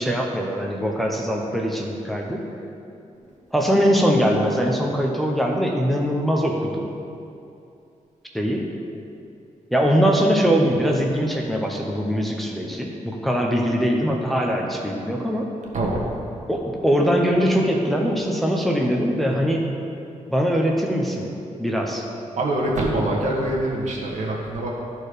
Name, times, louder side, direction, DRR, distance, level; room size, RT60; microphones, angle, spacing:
voice 1, 0.0-2.4 3.5-6.9 8.3-8.7 9.7-15.5 16.5-19.6 20.3-21.3 21.6-22.1, equal, ahead, -1 dB, 0.8 m, -22 dB
voice 2, 15.7-16.1 22.4-24.7, right 1 dB, 70° right, -2 dB, 1.6 m, -24 dB
13.0 x 4.5 x 5.0 m, 2.6 s
wide cardioid pair, 135°, 13 cm